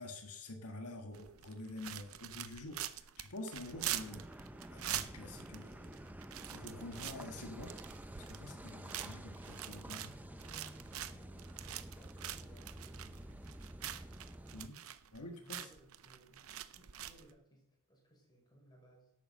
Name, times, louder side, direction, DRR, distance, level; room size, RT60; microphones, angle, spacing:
voice 1, 0.0-4.4 4.7-6.0 6.5-7.8 8.2-10.1 14.5-14.8 15.1-15.7, left 2 dB, 90° left, 3 dB, 1.7 m, -48 dB
sound 1, 1.1-17.3, right 12 dB, 65° right, 0.7 m, -45 dB
Car passing by / Idling / Accelerating revving vroom, 3.6-14.7, right 1 dB, 10° right, 0.6 m, -50 dB
voice 2, 10.3-13.6 15.4-19.1, equal, 20° left, -1 dB, 4.9 m, -62 dB
11.0 x 8.4 x 6.7 m, 0.75 s
head